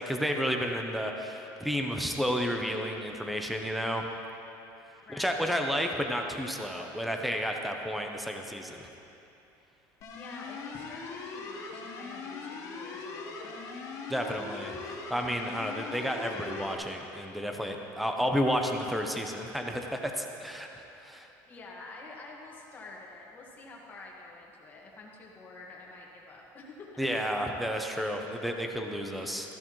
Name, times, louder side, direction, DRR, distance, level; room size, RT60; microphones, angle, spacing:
voice 1, 0.0-4.1 5.1-8.9 14.1-21.3 27.0-29.6, equal, ahead, 3 dB, 0.6 m, -31 dB
voice 2, 5.0-5.5 10.1-13.6 20.9-21.1 21.4-27.1, left 3 dB, 25° left, -2 dB, 1.6 m, -48 dB
sound 1, 10.0-16.7, left 4 dB, 40° left, 1.2 m, -41 dB
14.0 x 12.5 x 3.1 m, 2.9 s
cardioid pair, 165°, 8 cm